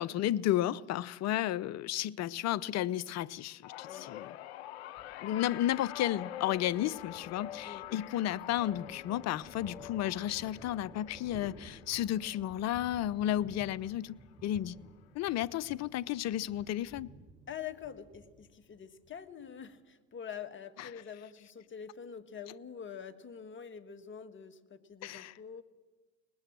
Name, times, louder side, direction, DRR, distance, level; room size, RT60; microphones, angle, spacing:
voice 1, 0.0-4.3 5.2-14.8 15.1-17.1 25.0-25.3, left 12 dB, 55° left, 0.8 m, -33 dB
sound 1, 3.6-14.1 14.4-14.8 15.9-16.0, left 14 dB, 90° left, 0.7 m, -46 dB
Thunder, 5.0-19.8, right 2 dB, 20° right, 6.2 m, -56 dB
voice 2, 17.5-25.6, left 8 dB, 35° left, 1.9 m, -45 dB
23.5 x 20.0 x 7.6 m
supercardioid pair, 80°, 32 cm